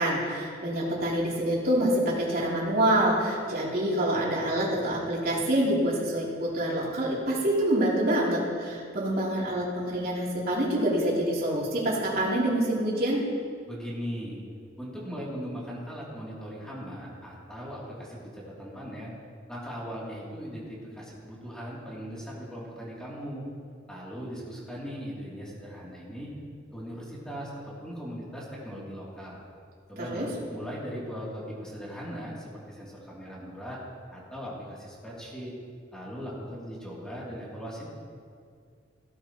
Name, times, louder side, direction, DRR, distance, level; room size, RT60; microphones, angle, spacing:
voice 1, 0.0-13.2 30.0-30.3, right 1 dB, 50° right, -6 dB, 3.4 m, -26 dB
voice 2, 13.7-14.4 14.8-19.1 19.5-23.4 23.9-26.3 26.7-29.4 29.9-33.8 34.1-35.5 35.9-37.8, equal, 5° left, -6 dB, 3.1 m, -39 dB
16.5 x 13.0 x 3.1 m, 2.2 s
head